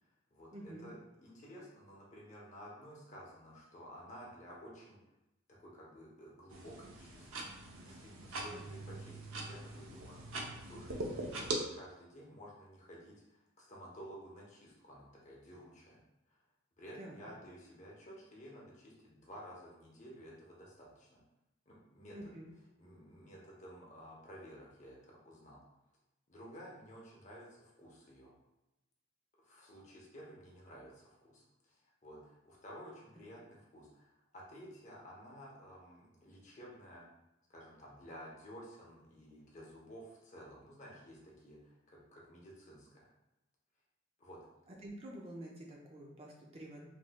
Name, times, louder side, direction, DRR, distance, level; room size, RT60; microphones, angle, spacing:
voice 1, 0.0-0.5 0.8-5.0 5.6-16.0 16.3-16.4 16.8-21.2 21.7-22.3 22.8-25.6 26.3-28.3 29.4-37.1 37.5-43.1 44.2-44.4, equal, 35° left, -4 dB, 0.7 m, -53 dB
voice 2, 0.5-0.9 8.5-8.7 17.0-17.3 22.1-22.5 44.7-46.9, right 1 dB, 30° right, -2 dB, 0.4 m, -49 dB
sound 1, 6.5-11.6, right 2 dB, 85° right, 0.6 m, -42 dB
3.2 x 3.1 x 2.2 m, 0.94 s
head